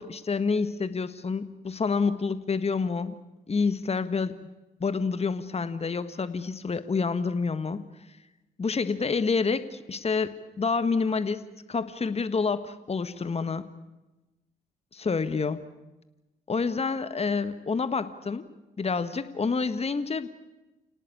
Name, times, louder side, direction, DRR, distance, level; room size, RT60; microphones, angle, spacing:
voice 1, 0.0-3.1 3.5-4.3 4.8-7.8 8.6-11.4 11.7-13.7 14.9-15.6 16.5-18.5 18.8-20.3, left 4 dB, 30° left, 13 dB, 1.6 m, -28 dB
28.5 x 18.5 x 8.5 m, 1.0 s
hypercardioid pair, 50°, 20 cm